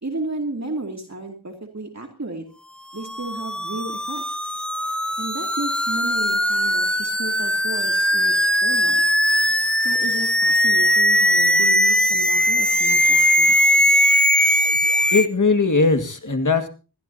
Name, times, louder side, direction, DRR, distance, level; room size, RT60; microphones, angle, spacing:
voice 1, 0.0-2.4 2.9-4.2 5.2-8.3 8.6-9.0 9.8-13.5, right 2 dB, 40° right, 3 dB, 2.5 m, -33 dB
sound 1, 3.0-15.3, equal, ahead, 0.8 m, -19 dB
voice 2, 15.1-16.7, left 4 dB, 45° left, 8 dB, 2.0 m, -19 dB
21.0 x 15.0 x 2.8 m, 0.34 s
wide cardioid pair, 50°, 41 cm